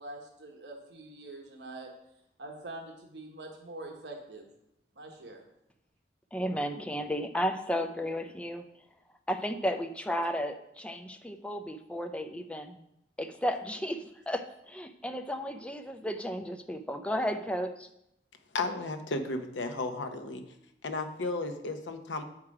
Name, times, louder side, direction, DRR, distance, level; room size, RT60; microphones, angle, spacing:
voice 1, 0.0-1.9 2.4-4.5 5.0-5.4, right 2 dB, 70° right, 2 dB, 1.1 m, -44 dB
voice 2, 6.3-8.6 9.3-12.8 13.2-17.9, equal, 5° left, 5 dB, 0.4 m, -33 dB
voice 3, 18.5-20.4 20.8-22.2, left 3 dB, 85° left, 7 dB, 0.8 m, -34 dB
7.3 x 4.8 x 4.8 m, 0.79 s
head